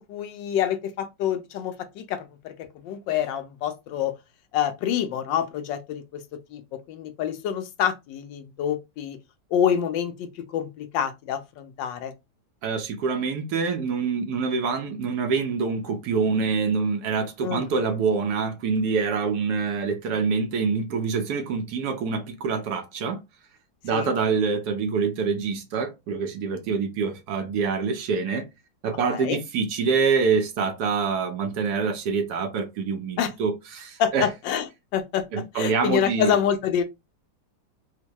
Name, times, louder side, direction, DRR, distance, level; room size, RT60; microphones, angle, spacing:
voice 1, 0.0-4.1 4.5-6.2 6.5-9.2 9.5-12.1 17.4-17.7 23.9-24.1 29.1-29.4 33.2-33.3 34.0-34.6 34.9-35.2 35.5-36.8, left 9 dB, 80° left, 1.3 m, -27 dB
voice 2, 12.6-23.2 23.8-28.5 28.8-34.3 35.3-36.4, right 5 dB, 70° right, 1.1 m, -26 dB
4.5 x 2.1 x 2.9 m
omnidirectional pair, 2.0 m